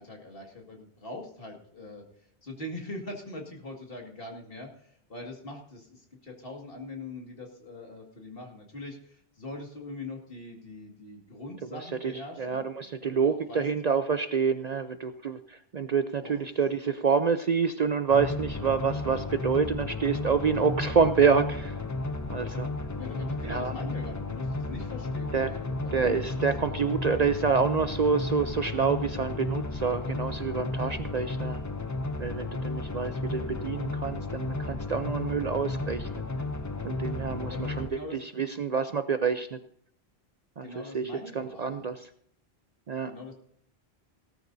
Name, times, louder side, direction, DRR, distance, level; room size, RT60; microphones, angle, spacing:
voice 1, 0.0-12.6 13.0-13.6 16.2-16.3 23.0-26.2 26.7-26.8 37.5-38.2 40.6-41.8 43.1-43.3, left 2 dB, 60° left, 1 dB, 2.3 m, -42 dB
voice 2, 11.6-21.8 22.3-22.7 23.4-23.7 25.3-25.5 25.9-31.6 32.2-36.3 36.8-39.6 40.6-42.1 42.9-43.2, right 5 dB, 50° right, 9 dB, 0.6 m, -27 dB
sound 1, 18.1-37.9, left 3 dB, 25° left, 0.4 m, -33 dB
17.5 x 13.0 x 2.7 m, 0.66 s
omnidirectional pair, 1.1 m